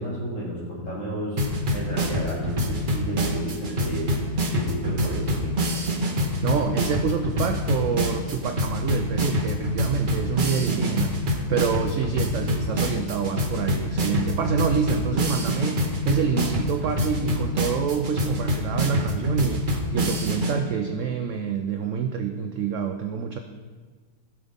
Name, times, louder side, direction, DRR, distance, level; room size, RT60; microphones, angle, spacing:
voice 1, 0.0-5.7, right 1 dB, 45° left, -8 dB, 3.6 m, -32 dB
sound 1, 1.4-20.5, equal, 35° right, 1.0 m, -26 dB
voice 2, 6.4-11.1 11.5-23.4, right 6 dB, 70° right, 6 dB, 0.7 m, -27 dB
16.0 x 6.1 x 3.6 m, 1.5 s
omnidirectional pair, 1.7 m